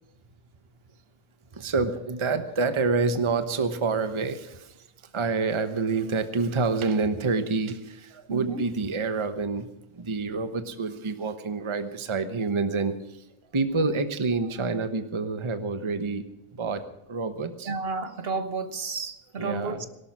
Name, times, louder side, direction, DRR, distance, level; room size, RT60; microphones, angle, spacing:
voice 1, 1.5-4.8 5.1-9.7 9.9-13.2 13.5-16.2 16.5-16.8 17.1-17.7 19.4-19.9, right 4 dB, 25° right, 0.9 m, -27 dB
voice 2, 8.3-8.6 17.7-19.8, right 4 dB, 45° right, 1.0 m, -31 dB
17.5 x 12.0 x 6.1 m
omnidirectional pair, 1.6 m